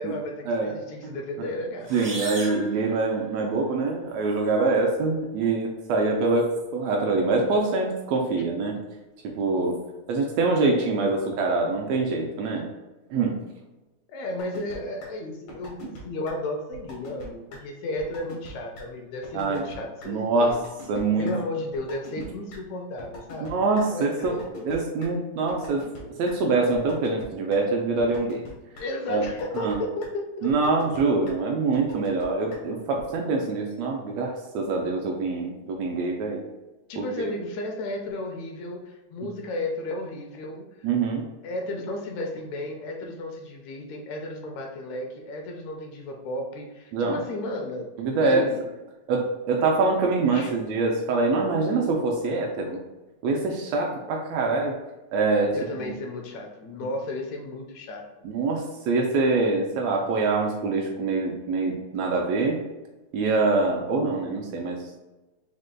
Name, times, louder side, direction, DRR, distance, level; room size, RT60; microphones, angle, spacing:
voice 1, 0.0-2.1 14.1-20.6 21.2-24.7 28.8-30.7 36.9-40.9 41.4-47.9 48.2-48.7 50.3-50.5 55.5-58.1, left 1 dB, 75° left, 2 dB, 1.9 m, -34 dB
voice 2, 1.0-1.5 1.9-8.8 9.2-9.8 10.1-12.7 13.1-13.4 19.3-19.6 20.1-20.6 20.9-21.3 23.4-24.4 24.6-25.9 26.2-28.4 29.1-29.2 29.5-29.8 30.4-36.4 37.0-37.3 40.8-41.2 46.9-47.2 48.0-48.5 49.1-52.8 53.2-54.8 55.1-55.9 58.3-62.6 63.1-65.0, right 3 dB, 75° right, 1 dB, 1.7 m, -25 dB
sound 1, 1.8-3.6, right 2 dB, 45° right, 1.1 m, -37 dB
sound 2, 14.4-14.8 15.0-15.1 15.5-16.0 16.3-16.4 16.7-17.3 17.5-17.6 18.0-18.5 18.8-18.9 19.2-19.8 20.0-20.1 20.5-21.0 21.3-21.4 21.7-22.6 23.0-23.8 24.2-25.1 25.5-26.0 26.3-26.4 26.7-27.2 27.5-27.6 28.0-28.5 28.8-28.9 29.2-29.7 30.0-30.1 30.5-31.0 31.3-31.4 31.7-32.2 32.5-32.6 33.0-33.1, left 2 dB, 60° left, 2.3 m, -43 dB
5.0 x 4.3 x 2.2 m, 1.1 s
omnidirectional pair, 3.4 m